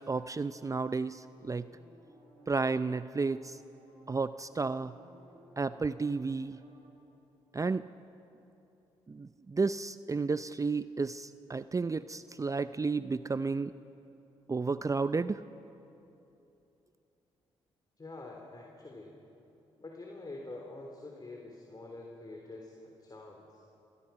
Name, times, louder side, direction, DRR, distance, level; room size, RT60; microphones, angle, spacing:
voice 1, 0.0-1.7 2.5-3.6 4.1-4.9 5.6-6.6 7.5-7.9 9.1-13.7 14.5-15.4, right 4 dB, 25° right, 13 dB, 0.6 m, -32 dB
sound 1, 1.3-6.9, right 1 dB, 80° right, 6.9 m, -60 dB
voice 2, 18.0-19.1 19.8-23.6, left 2 dB, 30° left, 0 dB, 3.5 m, -46 dB
26.0 x 22.0 x 5.9 m, 2.9 s
hypercardioid pair, 50°, 12 cm